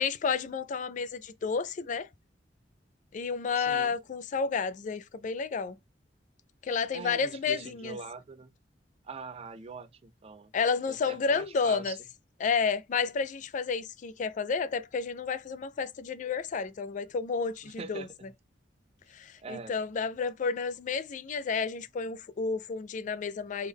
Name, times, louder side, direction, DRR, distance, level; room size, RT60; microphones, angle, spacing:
voice 1, 0.0-2.1 3.1-5.8 6.6-8.0 10.5-12.0 12.4-18.1 19.1-23.7, left 5 dB, 45° left, 0.3 m, -31 dB
voice 2, 3.5-3.9 6.9-8.5 9.0-10.5 10.9-12.0 17.6-18.3 19.4-19.7, right 4 dB, 35° right, 0.4 m, -43 dB
3.4 x 2.2 x 3.4 m
head